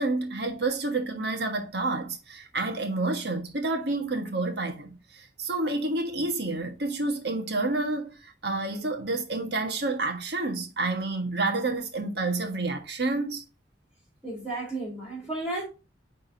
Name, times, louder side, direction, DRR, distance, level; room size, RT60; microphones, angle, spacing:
voice 1, 0.0-13.4, right 2 dB, 65° right, 1.5 m, -29 dB
voice 2, 14.2-15.6, right 2 dB, 5° right, 3.4 m, -33 dB
9.5 x 3.7 x 2.7 m
head